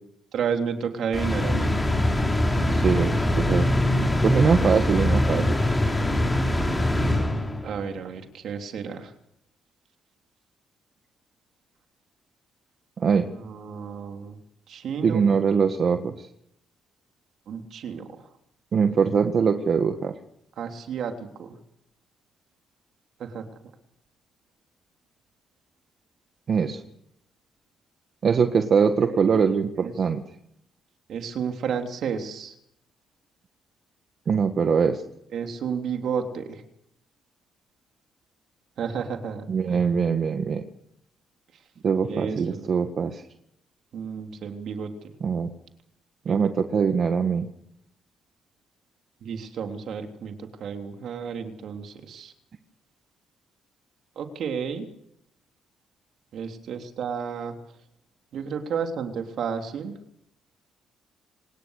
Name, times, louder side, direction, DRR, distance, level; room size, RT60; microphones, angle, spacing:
voice 1, 0.3-1.7 7.6-9.1 13.4-14.4 14.7-15.3 17.5-18.3 20.6-21.1 21.4-21.6 23.2-23.4 29.0-29.2 29.8-29.9 31.1-32.5 35.3-36.6 38.8-40.0 42.1-42.7 43.9-45.1 46.2-46.5 49.2-52.3 54.1-54.8 56.3-57.5 58.3-59.9, right 6 dB, 70° right, 5 dB, 3.3 m, -32 dB
sound 1, 1.1-7.8, left 1 dB, 15° left, 5.3 m, -23 dB
voice 2, 2.7-3.7 4.2-5.6 13.0-13.3 15.0-16.3 18.7-20.1 26.5-26.8 28.2-30.2 34.3-35.0 39.5-40.6 41.8-43.2 45.2-45.5 46.3-47.5, right 6 dB, 50° right, 7 dB, 1.7 m, -22 dB
27.0 x 19.5 x 6.6 m, 0.75 s
cardioid pair, 90°, 0 cm